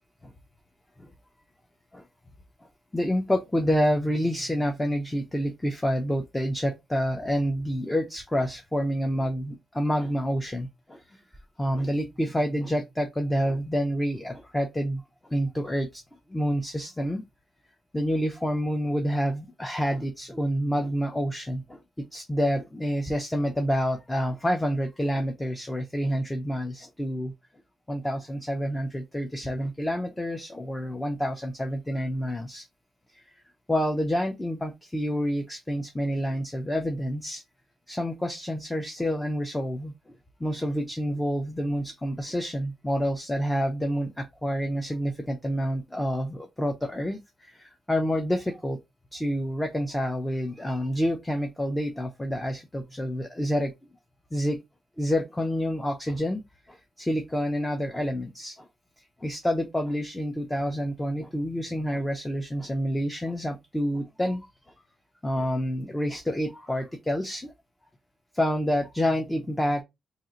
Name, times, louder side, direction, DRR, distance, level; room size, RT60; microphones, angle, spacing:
voice 1, 2.9-11.2 11.6-16.0 16.3-17.2 17.9-27.3 27.9-32.7 33.1-33.3 33.7-37.4 37.9-39.9 40.4-48.8 49.1-53.7 54.3-54.6 55.0-56.4 56.7-58.7 59.2-64.7 65.2-67.5 68.3-69.8, equal, 10° left, 0.5 m, -28 dB
2.7 x 2.4 x 3.8 m
wide cardioid pair, 155°, 0 cm